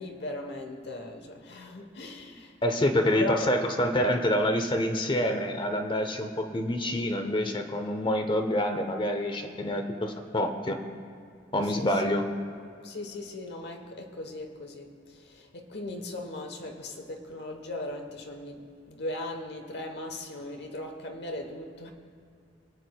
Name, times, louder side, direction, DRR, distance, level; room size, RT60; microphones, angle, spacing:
voice 1, 0.0-2.5 3.2-3.5 11.6-11.9 12.8-21.9, left 1 dB, 65° left, 4 dB, 1.1 m, -38 dB
voice 2, 2.6-10.8 11.5-12.3, left 1 dB, 25° left, 5 dB, 0.8 m, -27 dB
22.5 x 8.5 x 2.3 m, 2.6 s
head